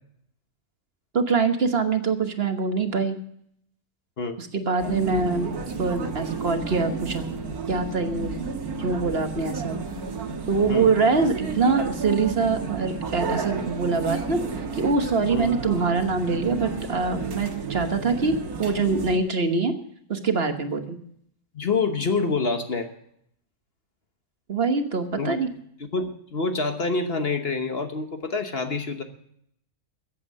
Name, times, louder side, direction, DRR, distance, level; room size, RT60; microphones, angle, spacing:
voice 1, 1.1-3.2 4.4-5.5 5.8-7.3 7.7-8.3 8.8-9.8 10.5-19.7 20.1-21.0 24.5-25.5, right 4 dB, 45° right, 8 dB, 1.3 m, -24 dB
sound 1, 4.8-19.2, right 5 dB, 80° right, 1.9 m, -32 dB
voice 2, 21.5-22.9 25.2-25.4 25.9-29.0, left 4 dB, 45° left, 7 dB, 1.2 m, -26 dB
14.5 x 8.4 x 7.5 m, 0.70 s
omnidirectional pair, 1.6 m